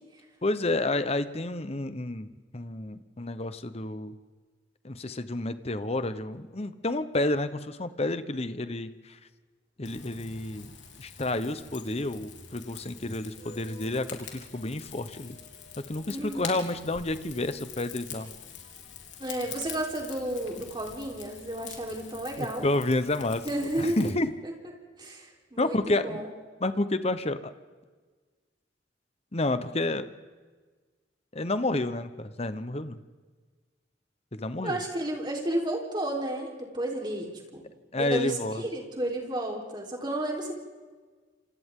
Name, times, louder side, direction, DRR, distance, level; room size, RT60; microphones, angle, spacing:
voice 1, 0.4-4.1 4.8-9.2 9.8-10.7 11.0-15.4 15.9-18.3 22.4-23.5 23.8-24.3 25.6-26.2 26.6-27.5 29.3-30.1 31.3-33.0 34.3-34.8 37.9-38.6, left 2 dB, 35° left, 11 dB, 1.0 m, -30 dB
Rain / Fire, 9.8-24.1, left 7 dB, 85° left, 3.6 m, -45 dB
voice 2, 16.1-16.6 19.2-22.7 23.5-24.1 25.0-26.3 34.6-37.6 38.0-40.5, right 1 dB, 25° right, 0 dB, 4.0 m, -32 dB
27.5 x 27.5 x 3.8 m, 1.4 s
head